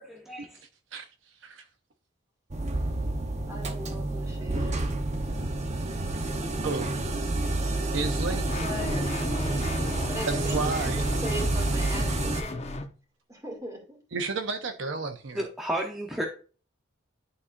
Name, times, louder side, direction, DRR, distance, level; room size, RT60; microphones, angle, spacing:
sound 1, 2.5-12.4, right 2 dB, 35° right, 0.8 m, -29 dB
voice 1, 3.5-4.8 8.3-12.6 13.3-13.8, right 1 dB, 15° right, 2.3 m, -39 dB
voice 2, 7.9-8.5 10.3-11.1 14.1-15.5, right 4 dB, 65° right, 0.7 m, -31 dB
sound 2, 8.5-12.9, left 2 dB, 35° left, 0.7 m, -35 dB
voice 3, 15.3-16.3, right 1 dB, ahead, 0.8 m, -31 dB
11.0 x 4.2 x 2.5 m
head